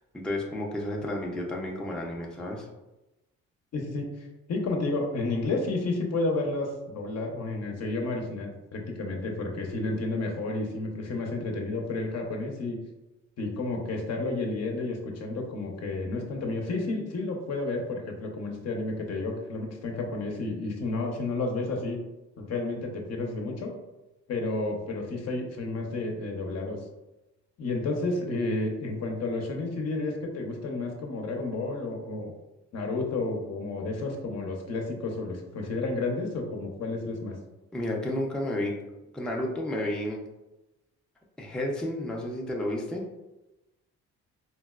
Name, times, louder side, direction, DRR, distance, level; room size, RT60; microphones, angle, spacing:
voice 1, 0.1-2.7 37.7-38.8 39.1-40.2 41.4-43.0, left 1 dB, 5° left, -1 dB, 0.4 m, -31 dB
voice 2, 3.7-12.8 13.4-22.0 22.4-23.7 24.3-26.8 27.6-32.3 32.7-37.4, left 2 dB, 60° left, 1 dB, 0.7 m, -31 dB
3.9 x 2.1 x 2.3 m, 1.0 s
cardioid pair, 90°, 30 cm